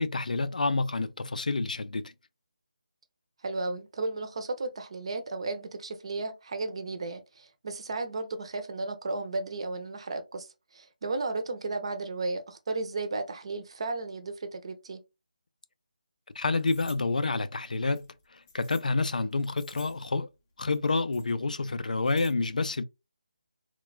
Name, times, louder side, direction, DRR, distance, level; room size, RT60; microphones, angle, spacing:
voice 1, 0.0-2.1 16.4-18.0 18.3-20.3 20.6-22.8, left 3 dB, 75° left, 0.4 m, -28 dB
voice 2, 3.4-15.0, right 3 dB, 40° right, 0.6 m, -34 dB
sound 1, 16.6-17.0 17.9-18.9 19.3-20.1 20.7-21.3 21.8-22.3, left 4 dB, 15° left, 0.4 m, -52 dB
3.1 x 2.2 x 2.3 m
figure-of-eight pair, 170°, 4 cm